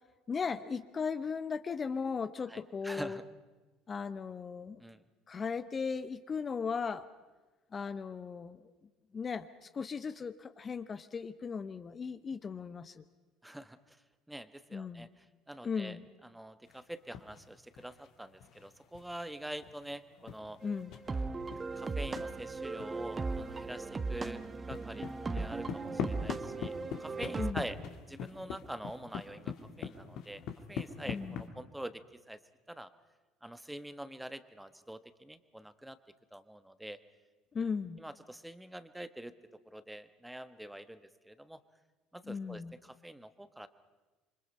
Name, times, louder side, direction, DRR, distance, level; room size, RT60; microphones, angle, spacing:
voice 1, 0.3-3.2 3.9-4.8 5.3-7.1 7.7-8.7 9.1-13.0 14.7-15.1 15.6-16.0 20.6-21.0 27.4-27.6 31.1-31.5 37.5-38.0 42.2-42.7, left 5 dB, 35° left, 12 dB, 0.9 m, -37 dB
voice 2, 2.5-3.2 4.8-5.0 13.4-14.0 14.3-20.6 21.8-25.1 25.3-27.8 28.1-30.4 30.7-32.4 32.7-32.9 33.4-36.0 36.3-37.0 38.0-41.6 42.1-43.7, right 1 dB, 5° right, 12 dB, 1.3 m, -45 dB
sound 1, 16.7-17.5 17.7-22.3 22.8-22.9 23.2-23.7 24.0-31.5, left 7 dB, 60° left, 2.1 m, -43 dB
sound 2, 20.6-27.5, right 3 dB, 25° right, 1.1 m, -38 dB
27.5 x 24.5 x 5.5 m, 1.2 s
hypercardioid pair, 65°, 0 cm